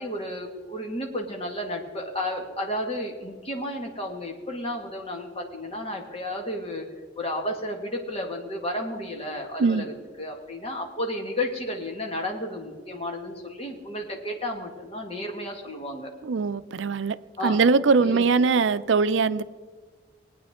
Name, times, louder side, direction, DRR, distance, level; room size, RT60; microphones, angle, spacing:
voice 1, 0.0-6.9 7.2-16.1 17.4-17.7 18.0-18.3, left 1 dB, 30° left, 1.9 m, -32 dB
voice 2, 16.2-17.2 17.4-19.4, right 4 dB, 75° right, 0.5 m, -21 dB
19.5 x 9.3 x 3.7 m
head